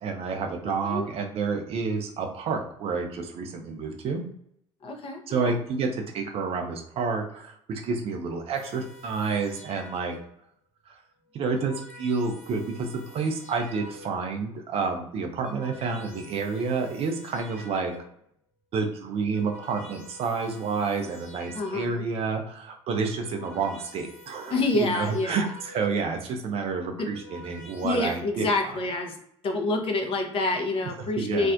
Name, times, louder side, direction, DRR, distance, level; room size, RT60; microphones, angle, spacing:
voice 1, 0.0-4.2 5.3-5.9 6.1-10.1 11.3-17.9 18.7-28.8 31.2-31.5, right 4 dB, 40° right, 3 dB, 0.4 m, -29 dB
voice 2, 4.8-5.5 21.5-22.0 24.5-25.5 26.9-27.1 27.8-29.1 29.4-31.5, left 2 dB, 35° left, 3 dB, 0.6 m, -27 dB
sound 1, 8.5-10.5 11.2-14.4 15.1-18.3 19.0-22.2 22.9-26.1 26.8-28.2, left 1 dB, 10° left, 1.1 m, -49 dB
2.4 x 2.0 x 2.5 m, 0.71 s
figure-of-eight pair, 60°, 15 cm